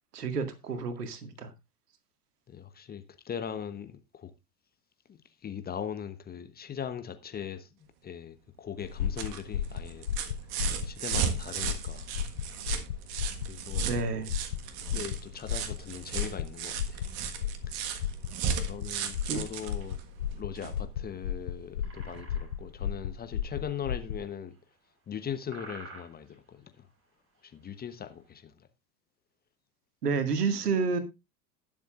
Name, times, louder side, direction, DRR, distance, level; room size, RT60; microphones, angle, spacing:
voice 1, 0.1-1.5 13.8-14.3 19.3-19.4 30.0-31.0, right 5 dB, 70° right, 2.1 m, -30 dB
voice 2, 2.5-4.3 5.1-7.7 8.0-10.1 10.9-12.2 13.5-14.2 14.9-17.1 17.7-17.8 18.6-20.0 20.3-24.6 25.1-26.9 27.4-28.5, left 8 dB, 20° left, 1.0 m, -40 dB
sound 1, 8.8-24.2, left 9 dB, 75° left, 0.9 m, -34 dB
sound 2, 8.8-20.8 22.1-22.2, right 8 dB, 45° right, 1.6 m, -36 dB
sound 3, 19.4-28.2, right 3 dB, 25° right, 7.7 m, -52 dB
19.5 x 7.3 x 2.5 m
figure-of-eight pair, 85°, 48 cm